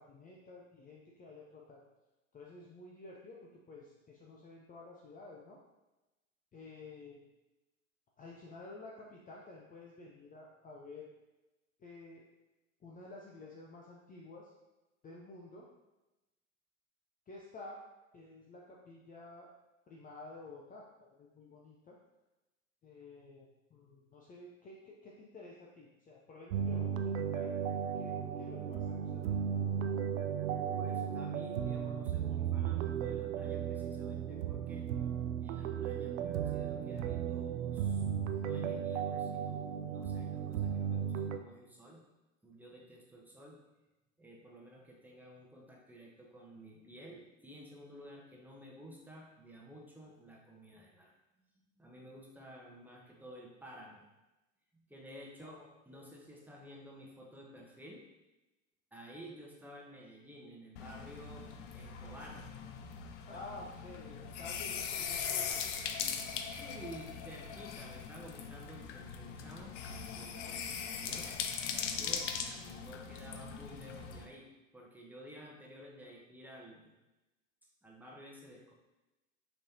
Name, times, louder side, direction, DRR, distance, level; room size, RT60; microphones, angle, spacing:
voice 1, 0.0-1.8 2.3-5.6 6.5-7.2 8.2-11.1 11.8-12.2 12.8-14.5 15.0-15.7 17.3-17.8 18.1-19.5 19.9-22.0 22.8-29.4 55.4-56.2 63.3-65.6, left 2 dB, 20° left, -3 dB, 0.6 m, -51 dB
sound 1, 26.5-41.4, right 8 dB, 70° right, 0.5 m, -35 dB
voice 2, 30.8-34.9 35.4-38.0 38.3-42.0 42.4-43.6 44.2-51.1 51.8-54.1 54.9-55.6 55.9-58.0 58.9-61.5 61.7-62.4 63.3-63.4 66.4-69.8 70.1-71.3 71.9-74.5 74.7-76.9 77.8-78.7, equal, 5° right, -3 dB, 1.0 m, -52 dB
sound 2, 60.8-74.3, left 7 dB, 60° left, 0.6 m, -40 dB
5.8 x 3.2 x 2.8 m, 1.0 s
hypercardioid pair, 85°, 40 cm